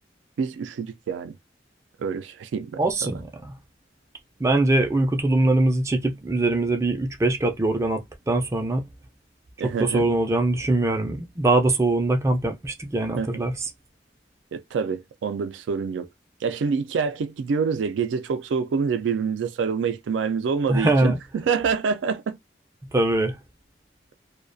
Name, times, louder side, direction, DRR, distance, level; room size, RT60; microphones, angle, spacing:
voice 1, 0.4-1.3 2.0-3.2 9.6-10.1 13.1-13.4 14.5-16.1 16.4-22.4, right 5 dB, 90° right, 0.3 m, -26 dB
voice 2, 2.8-3.5 4.4-8.9 9.6-13.5 20.7-21.2 22.9-23.4, right 2 dB, 15° right, 0.3 m, -22 dB
2.3 x 2.1 x 2.5 m
head